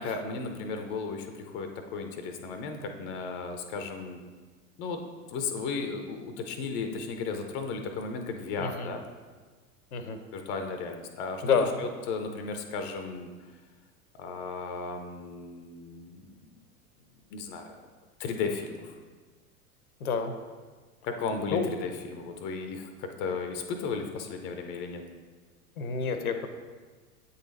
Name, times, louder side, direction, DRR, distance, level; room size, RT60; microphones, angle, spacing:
voice 1, 0.0-4.2 4.8-5.0 5.3-9.0 10.3-13.3 14.1-16.3 17.3-17.8 18.2-18.9 21.1-25.0, left 4 dB, 25° left, 6 dB, 0.6 m, -35 dB
voice 2, 8.6-8.9 9.9-10.2 11.4-11.8 20.0-20.3 21.5-21.7 25.8-26.5, left 5 dB, 70° left, 8 dB, 0.8 m, -28 dB
8.1 x 4.1 x 3.9 m, 1.4 s
figure-of-eight pair, 90°, 46 cm